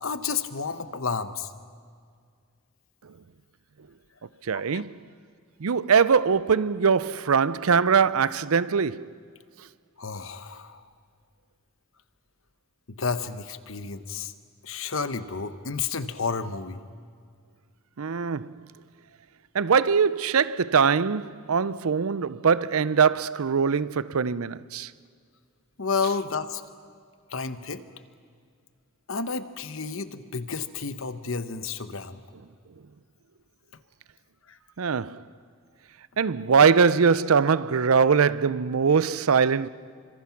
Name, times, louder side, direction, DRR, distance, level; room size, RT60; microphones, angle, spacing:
voice 1, 0.0-1.5 4.5-4.8 10.0-10.8 12.9-14.3 14.6-16.8 25.8-26.6 27.3-27.8 29.1-32.2 34.5-34.6, left 5 dB, 70° left, 1.1 m, -31 dB
voice 2, 4.4-5.0 5.6-9.1 18.0-18.6 19.5-24.9 34.8-35.2 36.2-39.7, right 6 dB, 85° right, 0.6 m, -22 dB
29.5 x 25.5 x 5.9 m
head